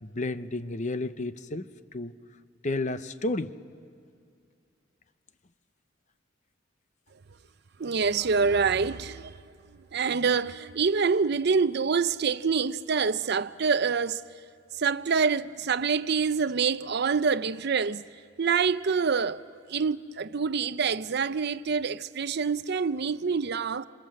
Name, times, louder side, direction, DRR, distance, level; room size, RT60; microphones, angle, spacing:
voice 1, 0.0-2.1 2.6-3.5, left 2 dB, 40° left, 0.8 m, -32 dB
voice 2, 7.8-9.4 9.9-14.2 14.8-18.0 18.4-23.9, right 5 dB, 60° right, 0.6 m, -26 dB
28.0 x 26.5 x 7.7 m
head